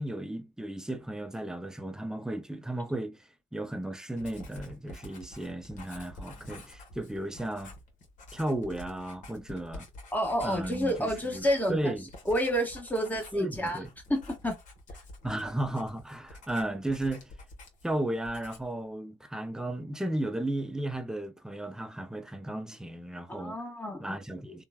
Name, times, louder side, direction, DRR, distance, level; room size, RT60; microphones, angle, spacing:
voice 1, 0.0-7.7 8.3-9.9 10.4-12.1 13.3-13.9 15.2-17.3 17.8-23.6 24.0-24.6, right 1 dB, 5° right, 0.5 m, -34 dB
Writing, 4.2-18.0 18.2-18.8, left 1 dB, 55° left, 1.0 m, -49 dB
voice 2, 10.1-11.9 12.3-13.8 14.1-14.6 23.3-24.2, equal, 10° left, 1.3 m, -29 dB
3.0 x 2.2 x 2.2 m
hypercardioid pair, 60°, 15 cm